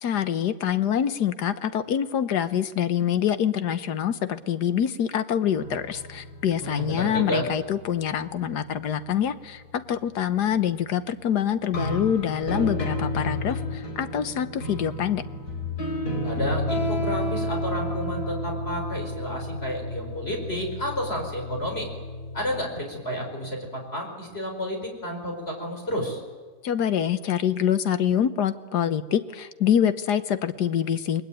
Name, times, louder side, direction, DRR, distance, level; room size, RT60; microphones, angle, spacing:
voice 1, 0.0-15.2 26.6-31.2, left 9 dB, 85° left, 12 dB, 1.7 m, -25 dB
sound 1, 5.5-9.9 11.7-22.7, left 1 dB, 70° left, 4.9 m, -32 dB
voice 2, 6.6-7.5 16.2-21.9 22.3-26.2, equal, 40° left, 2 dB, 5.5 m, -31 dB
29.0 x 21.0 x 9.2 m, 1.5 s
omnidirectional pair, 1.7 m